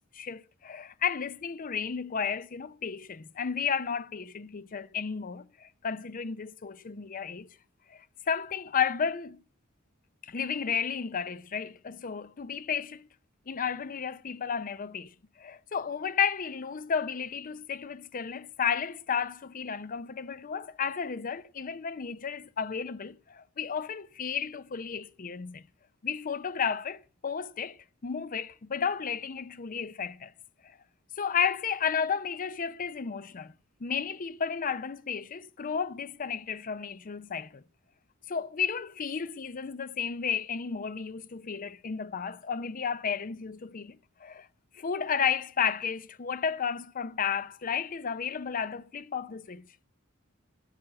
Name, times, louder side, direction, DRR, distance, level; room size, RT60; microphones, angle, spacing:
voice 1, 0.1-7.5 7.9-9.4 10.2-13.1 13.5-15.1 15.4-25.6 26.0-30.3 30.6-30.8 31.2-33.5 33.8-37.6 38.3-44.5 44.7-49.6, left 7 dB, 40° left, 0.5 m, -33 dB
13.5 x 8.9 x 7.4 m
head